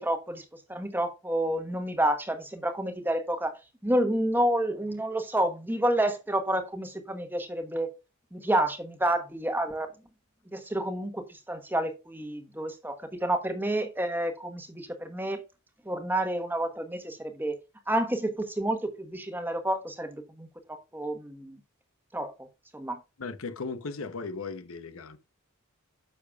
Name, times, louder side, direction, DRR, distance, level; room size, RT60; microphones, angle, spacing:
voice 1, 0.0-3.5 3.8-7.9 8.3-9.9 10.5-15.4 15.8-17.6 17.9-21.6 22.1-22.5 22.7-23.0, right 1 dB, 10° right, 1.2 m, -29 dB
voice 2, 23.2-25.2, left 4 dB, 65° left, 0.8 m, -37 dB
9.7 x 6.8 x 2.4 m
head